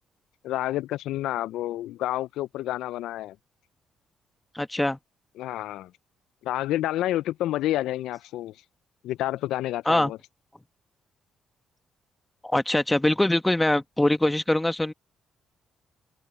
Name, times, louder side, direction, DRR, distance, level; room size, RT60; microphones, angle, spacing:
voice 1, 0.4-3.4 5.4-5.9 6.4-8.6 9.0-10.2, left 14 dB, 90° left, 0.3 m, -29 dB
voice 2, 4.5-5.0 9.8-10.1 12.4-14.9, left 1 dB, 10° left, 1.2 m, -23 dB
cardioid pair, 90°, 0 cm